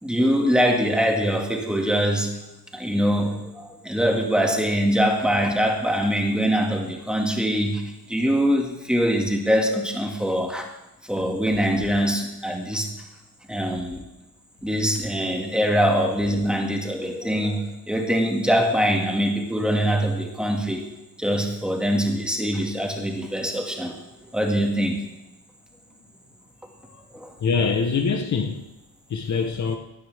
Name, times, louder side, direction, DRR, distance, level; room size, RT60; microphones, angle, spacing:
voice 1, 0.0-2.3 2.7-7.8 8.1-10.6 11.1-12.9 13.5-14.0 14.6-20.9 21.2-24.0 24.3-25.0 27.1-27.3, equal, ahead, 2.1 m, -23 dB
voice 2, 27.4-28.6 29.1-29.8, left 5 dB, 50° left, 1.1 m, -23 dB
16.5 x 11.5 x 3.6 m
cardioid pair, 130°, 36 cm